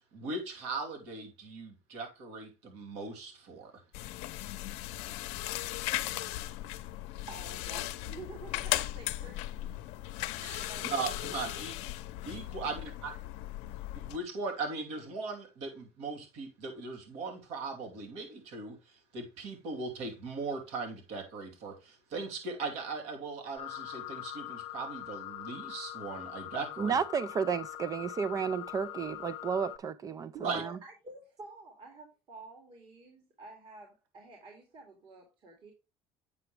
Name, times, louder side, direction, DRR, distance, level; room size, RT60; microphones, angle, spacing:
voice 1, 0.1-3.7 10.4-11.7 12.2-13.2 14.1-26.9 30.4-30.6, right 4 dB, 75° right, 2.7 m, -39 dB
sound 1, 3.9-14.2, left 16 dB, 80° left, 0.7 m, -37 dB
voice 2, 7.3-9.8 10.6-11.7 30.3-35.7, right 3 dB, 50° right, 2.4 m, -50 dB
sound 2, 23.6-29.8, left 14 dB, 55° left, 0.8 m, -43 dB
voice 3, 26.8-30.8, right 6 dB, 35° right, 0.4 m, -32 dB
8.2 x 5.8 x 3.3 m
cardioid pair, 110°, 11 cm